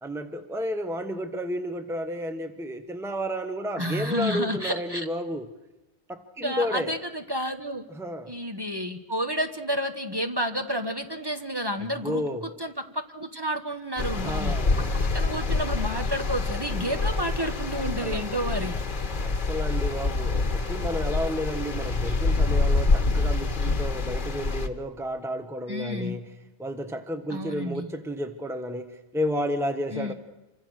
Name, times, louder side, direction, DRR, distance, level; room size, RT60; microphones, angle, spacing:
voice 1, 0.0-5.5 6.1-6.9 7.9-8.3 12.0-12.5 14.1-14.7 17.7-18.2 19.2-26.3 26.6-30.1, equal, ahead, 8 dB, 1.2 m, -32 dB
voice 2, 3.8-5.1 6.4-7.8 8.3-12.2 12.6-14.5 15.1-18.8 25.7-26.2 27.3-27.9 29.9-30.1, equal, 20° right, 5 dB, 1.4 m, -30 dB
sound 1, 14.0-24.7, left 3 dB, 45° left, 1.4 m, -26 dB
27.5 x 24.5 x 6.4 m, 0.99 s
omnidirectional pair, 1.2 m